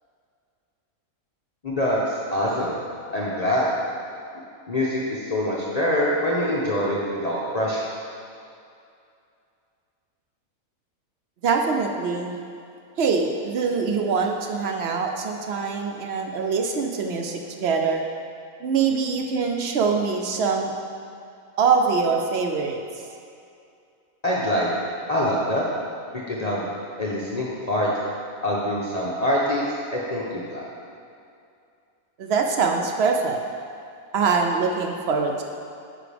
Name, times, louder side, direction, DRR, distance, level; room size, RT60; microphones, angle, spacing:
voice 1, 1.6-2.0 2.3-2.7 3.1-3.7 4.7-7.8 24.2-24.8 25.1-25.6 26.1-26.7 27.0-27.9 28.4-29.6 29.9-30.2 30.5-30.6, left 1 dB, 35° left, -6 dB, 0.8 m, -24 dB
voice 2, 11.4-12.3 13.0-18.0 18.6-20.7 21.6-23.0 32.2-33.4 34.1-35.4, right 5 dB, 60° right, 3 dB, 0.7 m, -23 dB
9.7 x 5.9 x 3.4 m, 2.4 s
omnidirectional pair, 1.5 m